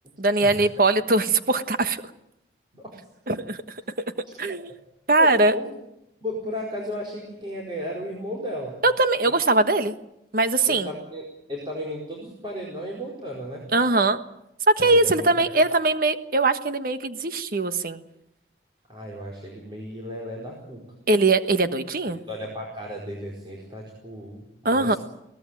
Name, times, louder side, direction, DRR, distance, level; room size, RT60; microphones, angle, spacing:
voice 1, 0.2-2.0 3.3-3.6 4.4-4.7 5.1-5.5 8.8-10.0 10.3-10.9 13.7-14.2 14.7-18.0 21.1-22.2 24.6-25.0, right 2 dB, 55° right, 10 dB, 1.3 m, -21 dB
voice 2, 5.2-5.7 6.2-8.8 10.7-11.2 11.5-13.7 14.8-15.8 18.9-20.8 22.3-25.0, equal, 25° right, -2 dB, 4.7 m, -34 dB
23.0 x 18.0 x 9.1 m, 0.83 s
head